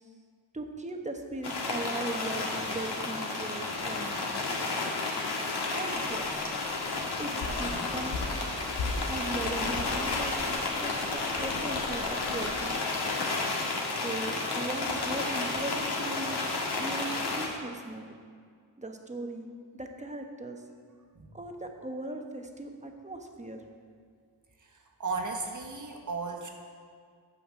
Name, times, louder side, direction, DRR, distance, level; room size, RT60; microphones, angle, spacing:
voice 1, 0.5-4.4 5.7-6.4 7.2-8.5 9.1-12.8 14.0-16.4 16.8-18.1 18.8-19.5 19.7-20.6 21.3-23.6, right 2 dB, 15° right, 3 dB, 1.0 m, -38 dB
sound 1, 1.4-17.5, left 3 dB, 60° left, 1.8 m, -32 dB
sound 2, 5.9-12.6, left 3 dB, 75° left, 1.5 m, -39 dB
voice 2, 24.6-26.5, right 4 dB, 40° right, 2 dB, 1.5 m, -35 dB
9.3 x 5.8 x 7.5 m, 2.1 s
cardioid pair, 100°, 44 cm